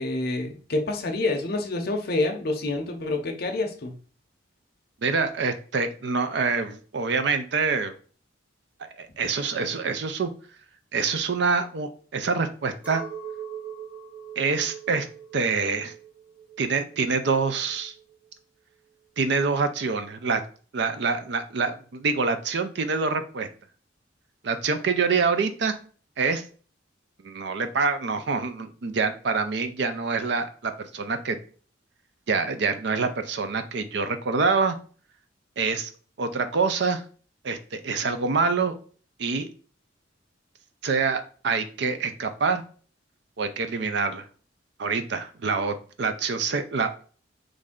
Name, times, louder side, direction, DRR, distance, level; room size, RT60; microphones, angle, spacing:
voice 1, 0.0-4.0, left 2 dB, 55° left, 4 dB, 0.6 m, -27 dB
voice 2, 5.0-7.9 9.0-10.3 10.9-13.0 14.4-15.1 15.3-15.9 16.6-17.9 19.2-20.4 20.7-23.5 24.4-25.8 26.2-26.4 27.2-31.4 32.3-34.8 35.6-35.9 36.2-37.0 37.4-38.8 39.2-39.5 40.8-42.6 43.4-44.3 44.8-46.9, right 4 dB, 60° right, 9 dB, 0.4 m, -26 dB
Chink clink, 12.8-18.3, right 7 dB, 10° right, 0.9 m, -41 dB
3.2 x 2.6 x 3.6 m, 0.41 s
head